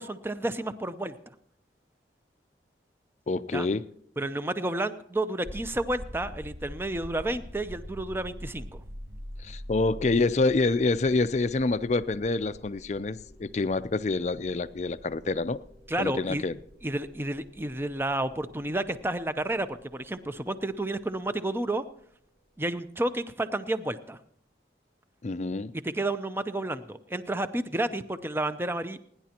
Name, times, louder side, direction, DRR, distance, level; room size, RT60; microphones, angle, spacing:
voice 1, 0.0-1.3 3.5-3.7 4.2-8.8 15.9-16.4 16.8-21.8 22.6-24.2 25.8-29.0, right 1 dB, 15° right, 0.5 m, -31 dB
voice 2, 3.3-3.8 9.4-15.6 16.0-16.5 25.2-25.7, left 3 dB, 40° left, 0.5 m, -27 dB
sound 1, 5.4-22.3, equal, 45° right, 7.1 m, -46 dB
29.0 x 10.5 x 2.9 m
head